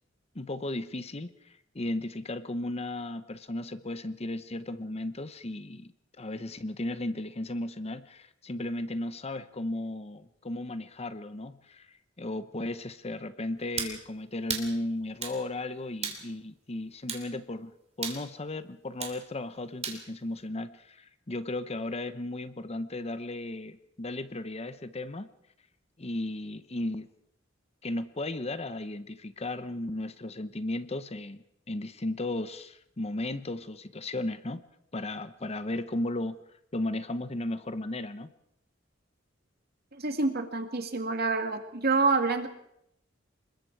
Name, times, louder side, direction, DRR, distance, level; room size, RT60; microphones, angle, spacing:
voice 1, 0.3-11.9 12.2-17.7 18.0-25.3 26.0-27.1 27.8-34.6 34.9-36.4 36.7-38.3, left 1 dB, 35° left, 13 dB, 0.9 m, -35 dB
sound 1, 13.8-14.0 14.5-14.7 15.2-15.4 16.0-16.2 17.1-17.3 18.0-18.2 19.0-19.2 19.8-20.0, right 6 dB, 35° right, 2.9 m, -34 dB
voice 2, 40.0-42.5, right 3 dB, 55° right, 7 dB, 2.1 m, -27 dB
26.0 x 21.5 x 4.7 m, 0.78 s
head